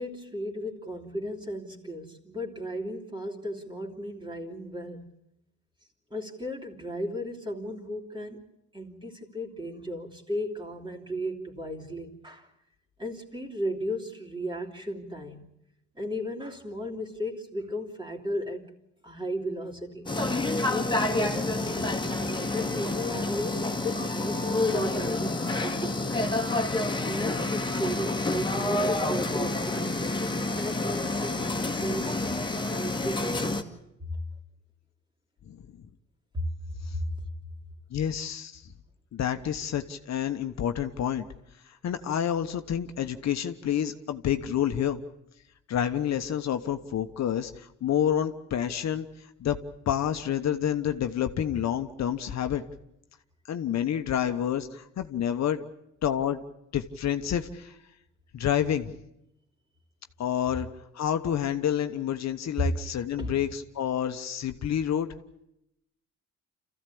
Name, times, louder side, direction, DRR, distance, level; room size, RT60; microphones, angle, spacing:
voice 1, 0.0-5.1 6.1-8.4 8.7-12.5 13.0-15.4 15.9-18.7 19.0-20.1 20.6-21.9 22.5-26.2 27.0-32.2 32.7-33.6 34.1-34.2 36.3-36.4 36.9-37.1 63.2-63.4, equal, 15° right, 1 dB, 3.1 m, -35 dB
sound 1, 20.1-33.6, left 2 dB, 15° left, 1.9 m, -28 dB
voice 2, 37.9-38.6 39.1-41.2 41.8-45.0 45.7-49.1 49.4-49.6 49.9-52.6 53.5-55.6 56.0-56.4 56.7-57.7 58.3-59.0 60.2-60.7 60.9-65.1, left 9 dB, 60° left, 7 dB, 1.1 m, -28 dB
27.0 x 15.0 x 8.5 m, 0.83 s
cardioid pair, 90°, 30 cm